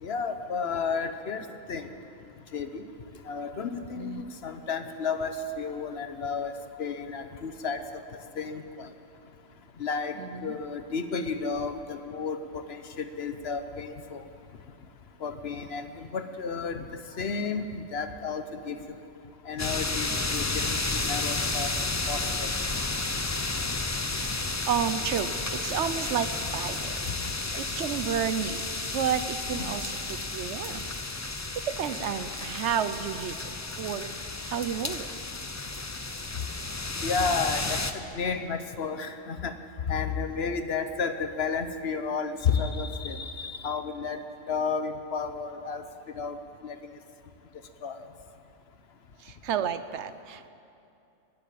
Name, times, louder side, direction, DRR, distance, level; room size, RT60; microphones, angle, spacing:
voice 1, 0.0-1.9 2.5-2.8 3.3-6.5 6.8-7.8 8.4-8.9 9.8-10.2 10.4-14.2 15.2-16.8 17.2-18.8 19.5-21.7 22.1-22.5 29.5-29.7 37.0-39.6 39.9-44.2 44.5-45.8 46.1-46.4 46.6-46.8 47.8-48.0, left 5 dB, 60° left, 9 dB, 1.0 m, -32 dB
voice 2, 10.2-10.5 24.4-27.1 27.3-28.7 28.9-30.8 31.3-34.1 34.4-35.1 49.2-50.5, right 8 dB, 70° right, 12 dB, 0.9 m, -31 dB
sound 1, 19.6-37.9, left 3 dB, 25° left, 0.4 m, -32 dB
20.5 x 8.2 x 8.5 m, 2.7 s
omnidirectional pair, 1.3 m